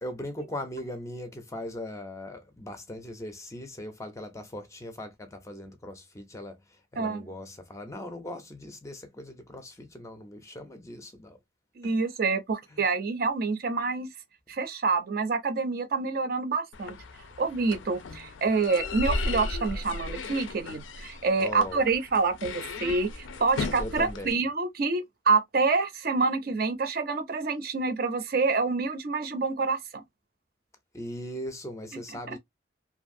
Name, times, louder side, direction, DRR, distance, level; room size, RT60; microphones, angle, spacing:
voice 1, 0.0-11.4 11.8-11.9 12.7-12.9 21.4-21.9 23.8-24.4 30.9-32.4, left 1 dB, 15° left, 0.4 m, -39 dB
voice 2, 11.8-14.1 14.5-16.9 17.4-30.0, right 4 dB, 50° right, 0.5 m, -27 dB
sound 1, 16.7-24.3, left 3 dB, 85° left, 0.4 m, -36 dB
2.6 x 2.4 x 2.5 m
head